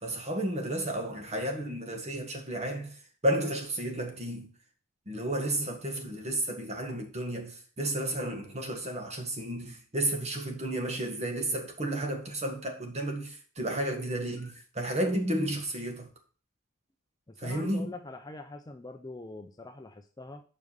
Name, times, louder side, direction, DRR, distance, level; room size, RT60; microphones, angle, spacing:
voice 1, 0.0-3.0 3.2-4.5 5.1-16.1 17.4-17.9, right 1 dB, 30° right, 1.8 m, -32 dB
voice 2, 17.3-20.4, left 2 dB, 20° left, 0.5 m, -44 dB
7.5 x 5.3 x 6.7 m
head